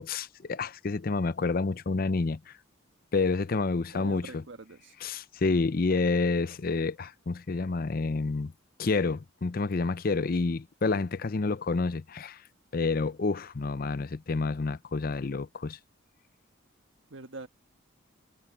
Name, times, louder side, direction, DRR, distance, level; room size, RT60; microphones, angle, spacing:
voice 1, 0.0-2.4 3.1-4.4 5.0-8.5 8.8-12.4 12.7-15.8, left 3 dB, 45° left, 0.5 m, -29 dB
voice 2, 3.9-4.9 17.1-17.5, right 3 dB, 70° right, 1.4 m, -43 dB
head